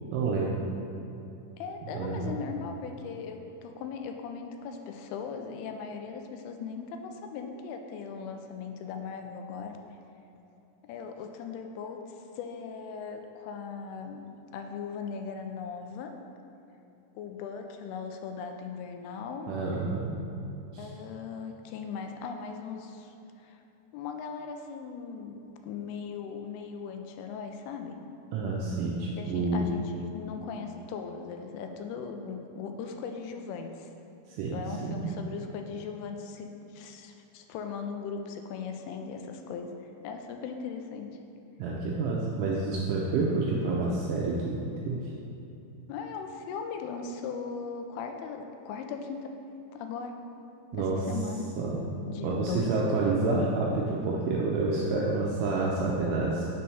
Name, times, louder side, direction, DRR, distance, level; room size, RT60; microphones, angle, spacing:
voice 1, 0.1-0.6 1.9-2.3 19.5-20.2 20.7-20.9 28.3-29.7 34.3-35.1 41.6-45.1 50.7-51.1 51.6-51.8 52.2-56.5, right 3 dB, 80° right, -3 dB, 1.9 m, -29 dB
voice 2, 1.6-9.8 10.8-14.2 14.5-16.1 17.2-19.5 20.8-23.6 23.9-28.0 29.2-33.9 34.5-39.7 40.0-41.2 45.9-49.4 49.7-50.2 50.7-51.5 52.1-53.0, left 5 dB, 85° left, 5 dB, 2.5 m, -39 dB
6.1 x 4.4 x 5.5 m, 2.8 s
omnidirectional pair, 4.4 m